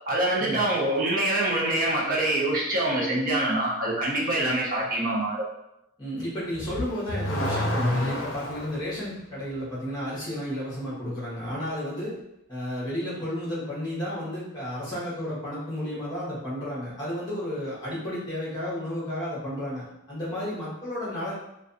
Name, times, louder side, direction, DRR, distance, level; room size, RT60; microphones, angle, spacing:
voice 1, 0.1-5.5, right 1 dB, 45° right, -4 dB, 0.6 m, -25 dB
voice 2, 6.0-12.1 12.5-21.3, equal, 20° left, -8 dB, 1.0 m, -32 dB
Car / Accelerating revving vroom, 6.5-8.8, left 1 dB, 65° left, 0.6 m, -28 dB
2.4 x 2.3 x 2.5 m, 0.87 s
head